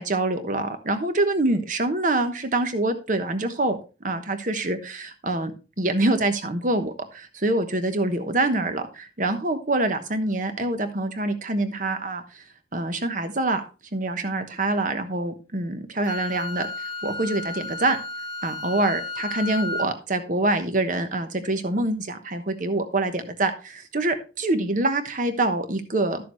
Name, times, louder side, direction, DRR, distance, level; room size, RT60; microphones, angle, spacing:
voice 1, 0.0-3.8 4.0-5.5 5.8-12.2 12.7-13.6 13.9-16.7 17.0-18.0 18.4-26.2, right 2 dB, 45° right, 8 dB, 1.2 m, -25 dB
Wind instrument woodwind instrument, 16.1-19.9, left 3 dB, 20° left, 1.2 m, -33 dB
12.5 x 6.9 x 3.2 m, 0.33 s
head